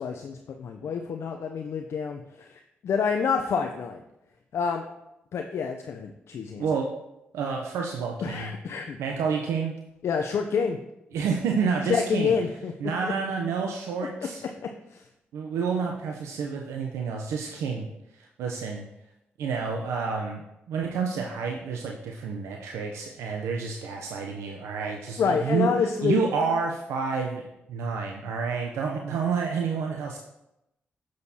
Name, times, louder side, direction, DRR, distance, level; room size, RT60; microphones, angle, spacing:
voice 1, 0.0-4.0 4.5-4.8 5.3-6.6 8.2-9.0 10.0-10.8 11.9-12.7 13.0-13.1 14.6-15.0 25.2-26.2, left 6 dB, 70° left, 4 dB, 0.5 m, -28 dB
voice 2, 6.6-6.9 7.3-8.5 9.0-9.7 11.1-12.3 12.8-14.4 15.3-17.9 18.1-18.9 19.4-25.7 26.0-30.2, right 5 dB, 85° right, 1 dB, 0.6 m, -29 dB
7.0 x 6.3 x 2.8 m, 0.87 s
supercardioid pair, 50°, 5 cm